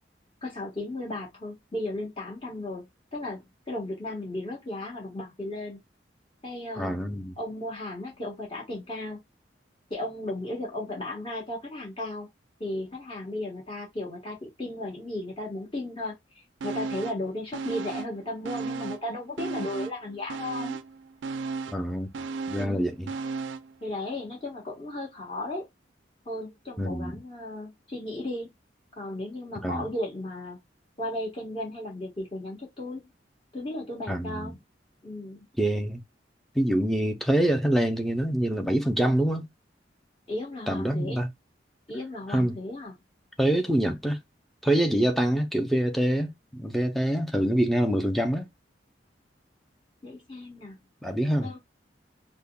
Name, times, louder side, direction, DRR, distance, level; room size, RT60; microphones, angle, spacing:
voice 1, 0.4-5.8 6.4-7.0 7.4-9.2 9.9-12.3 12.6-20.8 22.5-22.9 23.8-25.7 26.2-28.5 28.9-30.6 31.0-33.1 33.5-34.5 35.0-35.5 40.3-41.2 41.9-42.9 50.0-50.8 51.4-51.6, left 1 dB, 30° left, 1.4 m, -35 dB
voice 2, 6.8-7.3 21.7-22.1 22.5-23.1 26.8-27.2 29.6-29.9 34.1-34.6 35.6-36.0 36.5-39.5 40.7-41.3 42.3-42.6 43.4-44.2 44.6-48.5 51.0-51.6, right 1 dB, ahead, 0.5 m, -25 dB
sound 1, 16.6-17.3 17.5-19.1 19.4-23.7 24.1-24.2, right 4 dB, 85° right, 0.4 m, -35 dB
5.3 x 2.1 x 2.3 m
head